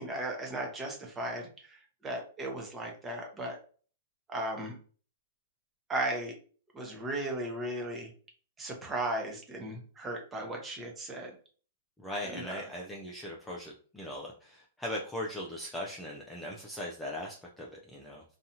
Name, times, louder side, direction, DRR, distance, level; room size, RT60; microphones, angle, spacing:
voice 1, 0.0-3.6 4.3-4.7 5.9-6.4 6.7-8.1 8.6-11.3 12.2-12.6, right 1 dB, 15° right, 1 dB, 0.7 m, -36 dB
voice 2, 12.0-18.2, left 1 dB, 5° left, -2 dB, 0.4 m, -39 dB
2.8 x 2.3 x 2.7 m, 0.42 s
hypercardioid pair, 150°, 0 cm